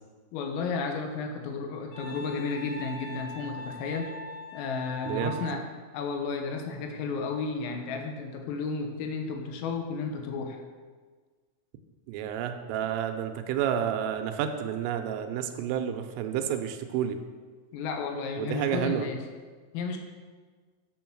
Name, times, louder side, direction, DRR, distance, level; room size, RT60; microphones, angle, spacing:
voice 1, 0.3-4.1 4.5-5.6 5.9-10.6 17.7-19.2 19.7-20.0, left 4 dB, 85° left, 3 dB, 3.8 m, -33 dB
Wind instrument woodwind instrument, 1.9-5.6, equal, 60° left, 5.3 m, -41 dB
voice 2, 5.0-5.4 12.1-17.2 18.4-19.1, right 9 dB, 85° right, 7 dB, 3.3 m, -30 dB
10.0 x 7.1 x 6.1 m, 1.5 s
omnidirectional pair, 5.8 m